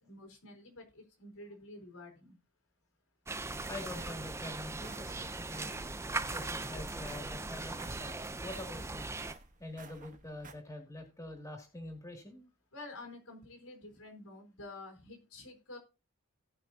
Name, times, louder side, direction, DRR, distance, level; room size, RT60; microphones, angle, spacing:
voice 1, 0.0-2.4 12.7-15.8, left 2 dB, 85° left, 3 dB, 3.7 m, -49 dB
sound 1, 3.3-9.3, right 3 dB, 10° right, 0.5 m, -39 dB
voice 2, 3.7-5.7 6.3-8.1 8.4-9.1 9.6-12.4, left 2 dB, 15° left, 2 dB, 2.4 m, -45 dB
sound 2, 3.8-10.5, right 4 dB, 35° right, 1.1 m, -56 dB
17.5 x 5.9 x 2.7 m, 0.30 s
head